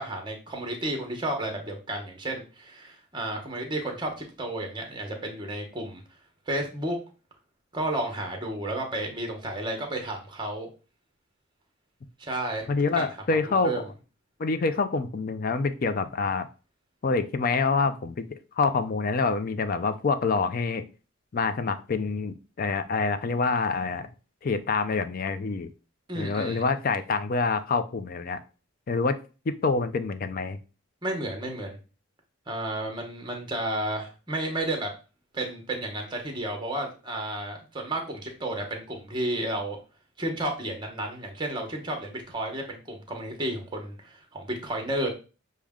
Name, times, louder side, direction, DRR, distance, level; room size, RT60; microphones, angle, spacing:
voice 1, 0.0-6.0 6.5-7.0 7.7-10.7 12.2-13.1 13.6-13.8 26.1-26.6 31.0-31.8 32.5-34.9 35.3-39.8 40.2-45.1, right 1 dB, 20° right, 3 dB, 0.9 m, -32 dB
voice 2, 12.7-13.8 14.4-16.5 17.0-20.8 21.3-24.1 24.4-25.7 26.1-28.4 28.9-29.2 29.5-30.6, left 4 dB, 40° left, 11 dB, 0.4 m, -26 dB
6.3 x 2.2 x 3.5 m, 0.34 s
head